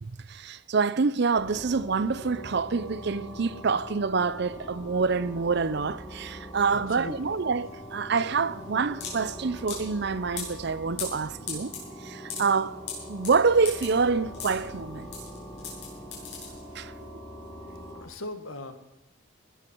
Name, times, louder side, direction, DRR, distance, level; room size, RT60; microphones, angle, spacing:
voice 1, 0.0-11.7 12.0-12.8 13.1-15.1 16.7-16.9, right 4 dB, 50° right, 0.5 m, -26 dB
sound 1, 1.3-18.0, equal, 10° left, 4.3 m, -43 dB
voice 2, 6.7-7.2 17.9-18.7, left 2 dB, 80° left, 1.8 m, -38 dB
sound 2, 7.1-17.0, left 5 dB, 55° left, 6.9 m, -40 dB
19.5 x 12.5 x 4.6 m
head